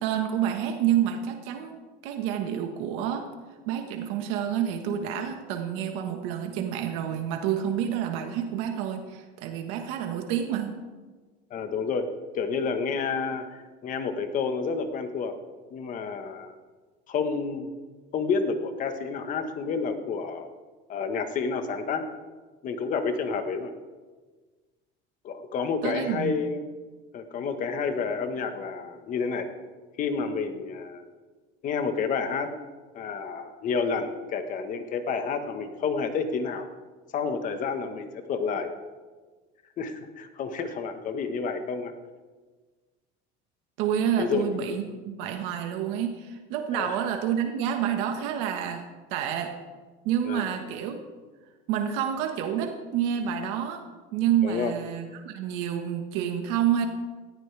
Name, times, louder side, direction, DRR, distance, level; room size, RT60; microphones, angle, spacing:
voice 1, 0.0-1.8 2.0-3.3 3.7-10.8 25.8-26.3 43.8-49.6 50.0-51.0 51.7-53.8 54.1-56.9, right 9 dB, 80° right, 4 dB, 1.6 m, -28 dB
voice 2, 11.5-12.1 12.3-15.3 15.7-16.5 17.1-17.7 18.1-20.5 20.9-22.0 22.6-23.7 25.2-26.6 27.1-29.5 30.0-31.0 31.6-32.5 32.9-36.7 37.1-38.7 39.8-41.9 44.2-44.4 46.7-47.0 50.2-50.5 54.4-54.7, left 5 dB, 40° left, 7 dB, 1.4 m, -29 dB
19.0 x 14.5 x 3.5 m, 1.4 s
cardioid pair, 155°, 21 cm